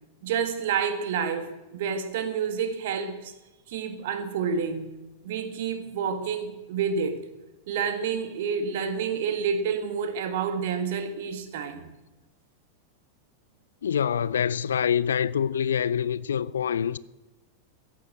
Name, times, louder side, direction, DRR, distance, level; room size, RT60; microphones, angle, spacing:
voice 1, 0.2-3.3 3.7-5.0 5.2-7.2 7.7-11.9, right 6 dB, 55° right, 1.7 m, -29 dB
voice 2, 13.8-17.0, left 8 dB, 65° left, 0.4 m, -25 dB
15.0 x 8.5 x 7.6 m
figure-of-eight pair, 90°, 0 cm